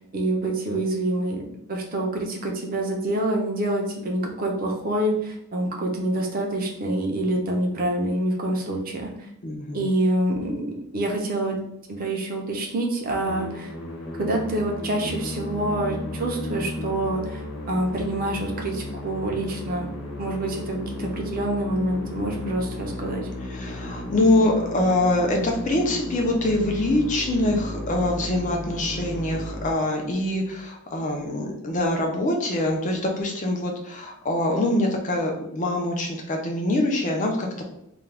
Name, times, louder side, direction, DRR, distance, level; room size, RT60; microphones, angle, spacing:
voice 1, 0.0-1.4 1.7-9.1 9.7-11.6 11.9-13.7 14.2-19.9 20.2-23.3, right 1 dB, 40° right, 0 dB, 0.5 m, -26 dB
voice 2, 9.4-9.9 23.4-37.7, left 1 dB, 35° left, 1 dB, 0.5 m, -24 dB
Musical instrument, 13.2-30.4, left 1 dB, 85° left, 1.0 m, -34 dB
2.4 x 2.2 x 3.3 m, 0.77 s
head